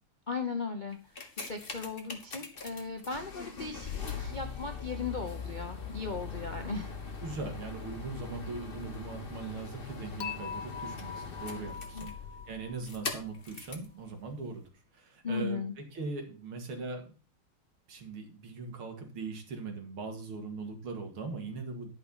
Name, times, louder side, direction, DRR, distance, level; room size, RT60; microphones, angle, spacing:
voice 1, 0.3-6.9 11.9-12.1 15.2-15.7, left 4 dB, 85° left, 5 dB, 0.4 m, -37 dB
sound 1, 0.9-13.9 14.6-14.7, left 5 dB, 30° left, 1.5 m, -41 dB
voice 2, 7.2-12.1 12.5-14.6 14.9-15.6 15.9-17.1 17.9-21.9, right 4 dB, 75° right, 4 dB, 2.9 m, -40 dB
Dishes pots and pans / Chink clink, 10.2-13.3, left 6 dB, 60° left, 0.9 m, -42 dB
11.5 x 5.8 x 5.6 m, 0.36 s
omnidirectional pair, 2.3 m